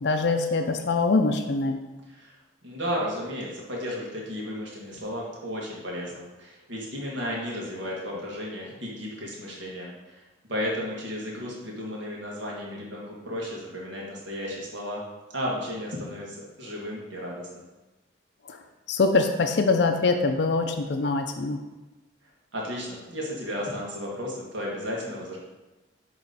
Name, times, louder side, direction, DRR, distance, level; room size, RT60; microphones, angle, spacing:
voice 1, 0.0-1.8 18.5-18.6 18.9-21.6, left 3 dB, 65° left, 5 dB, 0.5 m, -23 dB
voice 2, 2.6-10.2 10.5-15.0 15.3-17.6 22.5-25.4, equal, 70° right, -3 dB, 1.7 m, -34 dB
8.6 x 3.1 x 4.1 m, 1.1 s
head